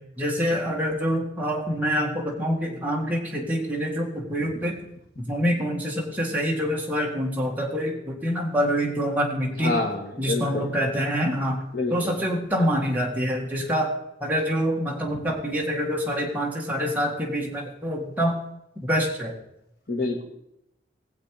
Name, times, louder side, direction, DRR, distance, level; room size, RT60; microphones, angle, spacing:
voice 1, 0.2-4.8 5.2-9.8 10.2-11.6 11.9-13.9 14.2-18.4 18.8-19.3, equal, 10° right, -2 dB, 2.1 m, -26 dB
voice 2, 9.6-10.7 11.7-12.1 19.9-20.2, left 2 dB, 55° left, 2 dB, 1.9 m, -27 dB
19.0 x 7.7 x 4.9 m, 0.82 s
head